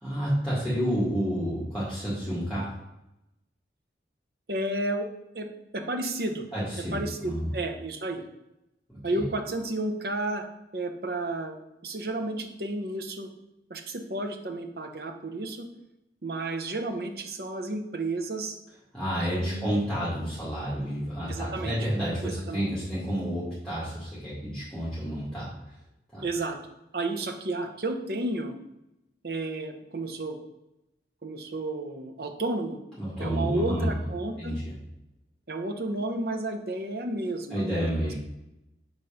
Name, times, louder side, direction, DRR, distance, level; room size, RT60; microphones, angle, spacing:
voice 1, 0.0-2.7 6.5-7.5 9.1-9.2 18.9-25.5 26.1-26.2 33.0-33.9 34.4-34.7 37.5-38.1, equal, 5° left, -10 dB, 2.0 m, -30 dB
voice 2, 4.5-5.1 5.3-5.5 5.7-6.5 6.9-8.2 9.0-10.4 10.7-11.6 11.8-13.3 13.7-15.7 16.2-18.6 19.3-19.7 21.3-21.7 22.2-22.6 26.2-26.6 26.9-28.6 29.2-30.4 31.2-32.8 33.2-34.5 35.5-37.8, right 2 dB, 55° right, 5 dB, 0.9 m, -32 dB
6.2 x 4.1 x 5.0 m, 0.89 s
head